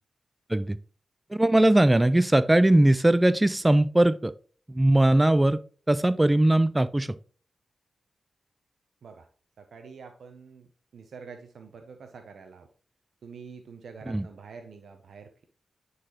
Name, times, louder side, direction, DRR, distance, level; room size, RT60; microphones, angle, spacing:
voice 1, 1.3-4.3 4.7-5.6 5.9-7.1 14.1-14.3, right 1 dB, 20° right, 16 dB, 0.3 m, -20 dB
voice 2, 9.6-10.7 10.9-12.7 13.2-15.4, right 5 dB, 80° right, 6 dB, 0.6 m, -46 dB
9.2 x 4.0 x 2.9 m, 0.41 s
cardioid pair, 45°, 0 cm